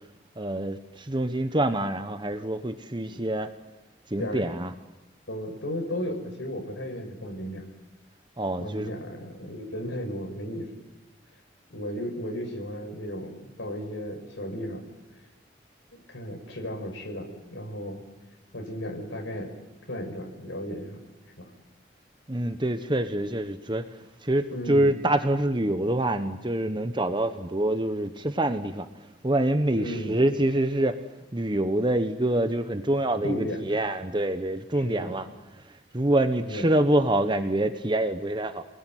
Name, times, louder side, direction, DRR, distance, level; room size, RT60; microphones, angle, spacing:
voice 1, 0.4-3.5 4.1-4.7 8.4-8.9 22.3-31.0 31.3-35.3 35.5-38.6, right 1 dB, 25° right, 9 dB, 1.1 m, -26 dB
voice 2, 4.2-4.5 5.3-7.6 8.6-10.7 11.7-14.9 15.9-18.0 18.5-19.5 19.9-21.0 21.4-21.5 24.5-25.0 29.7-30.2 33.2-33.6 34.8-35.2 36.4-36.7, equal, 90° left, 3 dB, 5.8 m, -35 dB
29.5 x 20.5 x 9.3 m, 1.0 s
head